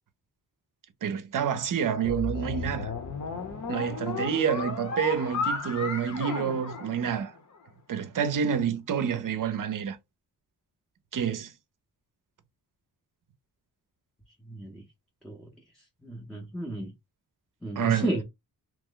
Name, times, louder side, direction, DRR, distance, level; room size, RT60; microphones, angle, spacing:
voice 1, 1.0-2.9 3.7-7.3 7.9-10.0 11.1-11.5 17.8-18.1, right 8 dB, 55° right, 0.6 m, -28 dB
sound 1, 2.0-7.5, left 4 dB, 45° left, 0.8 m, -34 dB
voice 2, 14.5-14.8 15.2-15.5 16.0-16.9 17.6-18.2, right 1 dB, ahead, 0.6 m, -33 dB
3.0 x 2.1 x 3.7 m
wide cardioid pair, 155°, 40 cm